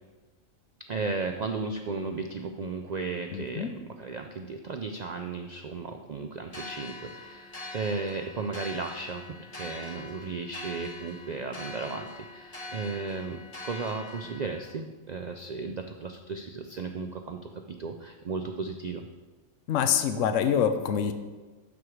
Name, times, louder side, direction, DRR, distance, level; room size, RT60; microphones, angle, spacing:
voice 1, 0.9-9.3 9.5-19.0, right 4 dB, 60° right, 5 dB, 0.4 m, -35 dB
voice 2, 3.3-3.7 19.7-21.1, left 8 dB, 75° left, 9 dB, 1.0 m, -25 dB
sound 1, 6.5-14.7, left 2 dB, 30° left, 1.5 m, -43 dB
12.0 x 4.8 x 4.8 m, 1.3 s
omnidirectional pair, 1.4 m